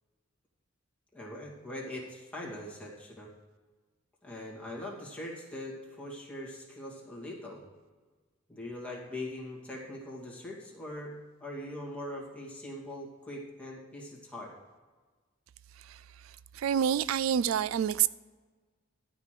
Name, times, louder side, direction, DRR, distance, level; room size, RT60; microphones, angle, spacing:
voice 1, 1.1-3.3 4.2-7.6 8.5-11.1 11.4-14.5, left 1 dB, 5° left, -4 dB, 2.4 m, -41 dB
voice 2, 16.5-18.1, right 9 dB, 85° right, 17 dB, 0.3 m, -27 dB
12.5 x 5.0 x 7.6 m, 1.4 s
head